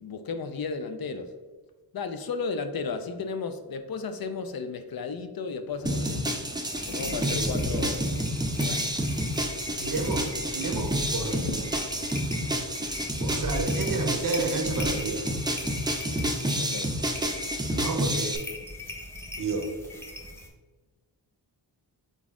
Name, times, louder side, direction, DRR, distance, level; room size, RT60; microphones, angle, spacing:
voice 1, 0.0-1.3 1.9-6.5 6.9-8.0 8.5-9.1 16.6-16.9, left 4 dB, 55° left, 8 dB, 0.5 m, -34 dB
Wind, 5.6-18.0, left 1 dB, 85° left, 0.9 m, -46 dB
sound 1, 5.9-18.4, equal, 10° right, 0.5 m, -29 dB
sound 2, 6.7-20.5, left 1 dB, 5° left, 0.9 m, -40 dB
voice 2, 9.8-11.4 13.2-15.3 17.7-18.4 19.4-19.7, right 3 dB, 50° right, 5 dB, 0.8 m, -31 dB
4.0 x 3.6 x 3.6 m, 1.3 s
wide cardioid pair, 80°, 43 cm